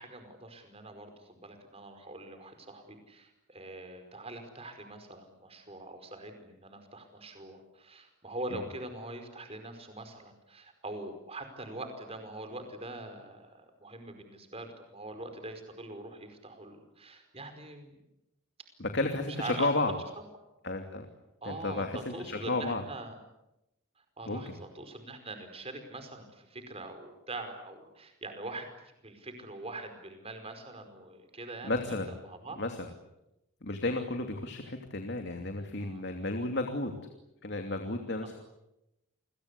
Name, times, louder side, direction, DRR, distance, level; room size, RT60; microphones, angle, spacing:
voice 1, 0.0-18.0 19.4-19.7 21.4-23.2 24.2-28.7 29.0-31.8 32.2-32.6 35.4-36.1 38.2-38.3, right 2 dB, 30° right, 7 dB, 5.0 m, -43 dB
voice 2, 18.8-19.9 20.6-21.1 21.4-22.8 24.3-24.5 31.6-32.1 32.6-32.8 33.6-36.9 37.4-38.3, left 2 dB, 55° left, 4 dB, 2.8 m, -32 dB
29.5 x 23.0 x 8.4 m, 0.89 s
head